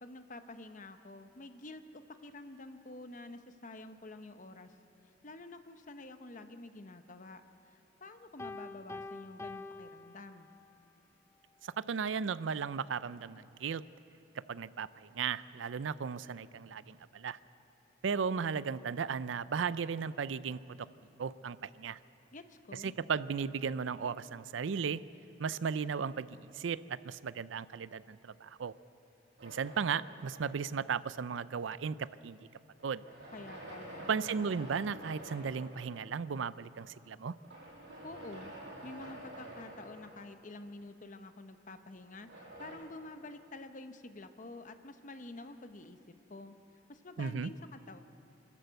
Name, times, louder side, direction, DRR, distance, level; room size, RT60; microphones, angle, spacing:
voice 1, 0.0-4.7 5.2-10.5 22.3-22.9 33.3-34.1 38.0-38.5 38.8-46.6 46.9-48.0, left 2 dB, 45° left, 9 dB, 0.9 m, -49 dB
Piano, 8.4-10.8, left 3 dB, 15° left, 0.5 m, -46 dB
voice 2, 11.6-13.8 14.5-17.4 18.0-20.9 21.2-22.0 22.8-25.0 25.4-28.7 29.4-32.4 32.8-33.0 34.1-37.3 47.2-47.5, right 6 dB, 90° right, 17 dB, 0.5 m, -35 dB
sound 1, 29.4-30.9 32.8-36.0 37.4-40.6 42.1-42.8, right 1 dB, 70° right, 6.3 m, -49 dB
24.0 x 13.5 x 8.0 m, 2.8 s
head